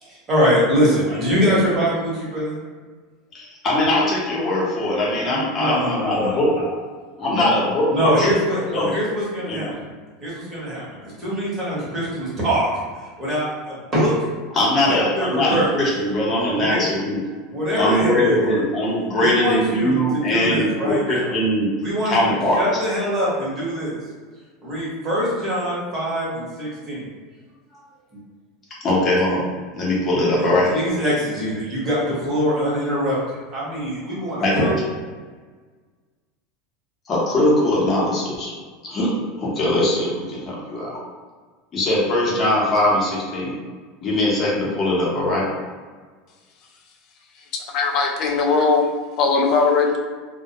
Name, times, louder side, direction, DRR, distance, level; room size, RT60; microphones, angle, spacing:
voice 1, 0.0-2.6 5.3-6.3 7.3-7.5 7.9-9.9 10.2-12.7 13.2-14.1 14.9-15.7 16.6-16.9 17.5-18.5 19.1-20.0 20.3-21.3 21.8-23.9 24.6-27.1 30.4-34.7, equal, 25° right, -7 dB, 1.0 m, -23 dB
voice 2, 3.3-6.7 7.2-8.3 8.7-8.9 9.5-9.7 14.5-17.2 17.8-21.7 22.0-22.6 28.8-29.4 29.8-30.7 34.4-34.7 37.1-38.5 38.8-39.1 39.4-40.9 41.7-43.6 44.0-45.4, left 1 dB, 25° left, -6 dB, 0.8 m, -21 dB
voice 3, 47.7-48.9 49.2-50.0, left 4 dB, 40° left, 1 dB, 0.4 m, -19 dB
2.2 x 2.1 x 2.7 m, 1.5 s
supercardioid pair, 150°, 0 cm